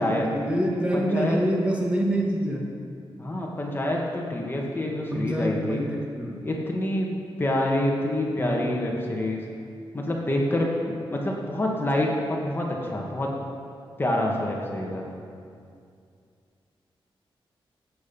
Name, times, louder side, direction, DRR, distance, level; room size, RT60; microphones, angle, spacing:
voice 1, 0.0-2.7 5.1-6.5 8.4-8.6, equal, 15° right, -2 dB, 1.8 m, -26 dB
voice 2, 0.9-1.4 3.2-5.8 6.4-7.1 7.4-9.4 9.9-10.7 11.1-13.3 14.0-15.1, left 1 dB, 25° left, -1 dB, 1.8 m, -27 dB
16.5 x 8.8 x 5.6 m, 2.4 s
wide cardioid pair, 125°, 9 cm